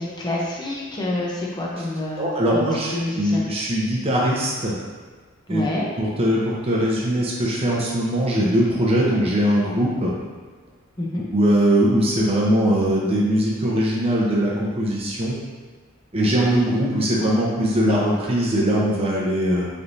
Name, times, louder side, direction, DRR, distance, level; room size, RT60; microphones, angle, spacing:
voice 1, 0.0-2.3 2.9-3.4 5.5-5.9 11.0-11.2, left 2 dB, 20° left, -4 dB, 0.7 m, -27 dB
voice 2, 2.2-4.7 5.5-5.6 6.0-10.1 11.3-15.4 16.1-19.7, equal, 30° right, -4 dB, 0.7 m, -21 dB
4.2 x 3.3 x 2.6 m, 1.5 s
head